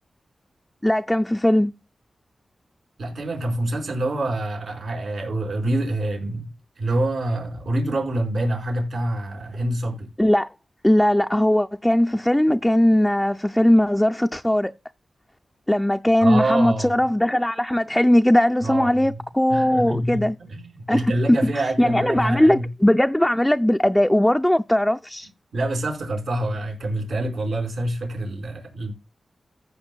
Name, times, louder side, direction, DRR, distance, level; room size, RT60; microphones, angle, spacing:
voice 1, 0.8-1.7 10.2-10.5 10.8-14.7 15.7-20.3 20.9-25.3, left 1 dB, 10° left, 0.4 m, -19 dB
voice 2, 3.0-6.5 6.8-10.1 16.2-16.9 18.6-18.9 19.5-22.7 25.5-28.9, right 1 dB, 80° right, 5.0 m, -26 dB
15.0 x 8.1 x 2.3 m
cardioid pair, 55°, 0 cm